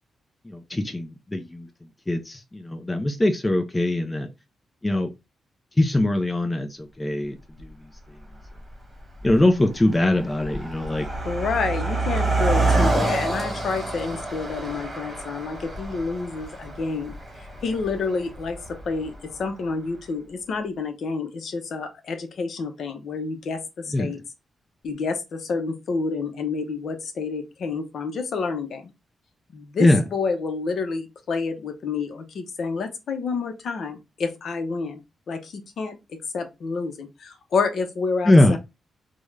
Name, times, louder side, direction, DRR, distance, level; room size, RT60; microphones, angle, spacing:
voice 1, 0.4-1.7 2.1-4.3 4.8-5.1 5.8-7.9 9.2-11.1 23.9-24.1 29.8-30.0 38.3-38.6, left 1 dB, 15° left, 5 dB, 0.3 m, -22 dB
Car passing by, 7.6-7.7 8.5-8.7 9.0-19.4, right 2 dB, 10° right, 1.2 m, -27 dB
voice 2, 11.3-17.1 17.6-24.2 24.8-28.9 29.5-35.0 35.3-38.6, left 4 dB, 60° left, 7 dB, 0.6 m, -29 dB
3.5 x 2.1 x 3.2 m, 0.24 s
wide cardioid pair, 150°, 0 cm